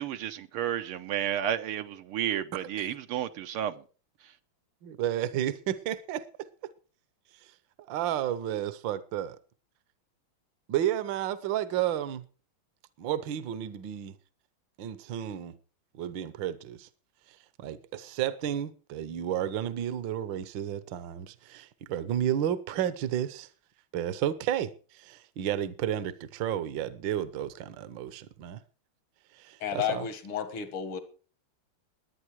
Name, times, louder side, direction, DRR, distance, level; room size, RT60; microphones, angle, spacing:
voice 1, 0.0-3.8, right 10 dB, 85° right, 1.8 m, -32 dB
voice 2, 4.8-6.5 7.4-7.5 7.9-9.4 10.7-12.2 13.0-14.2 14.8-15.6 15.9-16.9 17.3-23.5 23.9-28.6 29.3-30.1, right 11 dB, 65° right, 1.5 m, -32 dB
voice 3, 29.6-31.0, left 8 dB, 75° left, 2.5 m, -32 dB
20.0 x 9.2 x 4.7 m
omnidirectional pair, 2.4 m